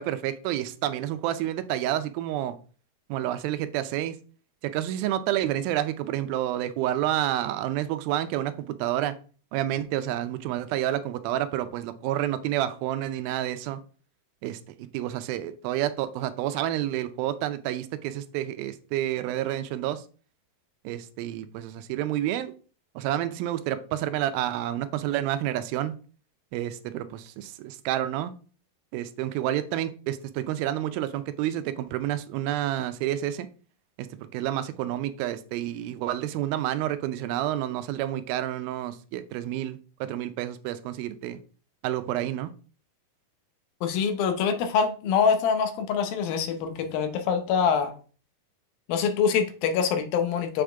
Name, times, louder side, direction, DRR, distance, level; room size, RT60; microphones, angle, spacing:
voice 1, 0.0-2.6 3.1-4.2 4.6-9.2 9.5-13.8 14.4-20.0 20.8-22.5 23.0-25.9 26.5-28.3 28.9-33.5 34.0-41.4 41.8-42.5, right 12 dB, 85° right, 11 dB, 2.5 m, -29 dB
voice 2, 43.8-47.9 48.9-50.6, left 6 dB, 85° left, 6 dB, 2.7 m, -25 dB
7.2 x 5.0 x 3.4 m, 0.39 s
omnidirectional pair, 4.2 m